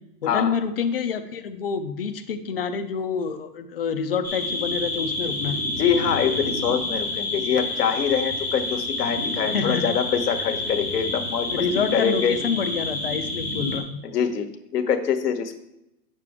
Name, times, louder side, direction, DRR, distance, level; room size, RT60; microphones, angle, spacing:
voice 1, 0.2-5.6 9.5-10.0 11.5-14.0, left 6 dB, 35° left, 8 dB, 0.5 m, -27 dB
sound 1, 4.2-13.8, left 2 dB, 15° right, 0.5 m, -29 dB
voice 2, 5.8-11.5 11.9-12.4 14.0-14.5 14.7-15.5, left 7 dB, 70° left, 7 dB, 1.3 m, -24 dB
8.8 x 6.8 x 3.6 m, 0.89 s
hypercardioid pair, 170°, 49 cm